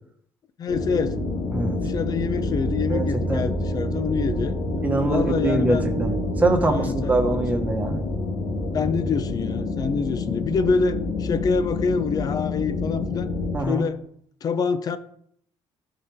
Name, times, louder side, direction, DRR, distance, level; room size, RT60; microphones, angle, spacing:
voice 1, 0.6-1.2 1.8-4.5 5.0-5.9 6.6-7.5 8.7-13.3 13.7-14.0 14.4-15.0, left 5 dB, 40° left, 12 dB, 0.7 m, -26 dB
sound 1, 0.7-13.6, left 2 dB, 75° left, 2.4 m, -27 dB
voice 2, 2.9-3.4 4.8-8.0 13.5-13.9, right 2 dB, 15° right, 3 dB, 1.6 m, -24 dB
14.0 x 4.9 x 3.6 m, 0.68 s
cardioid pair, 125°, 10 cm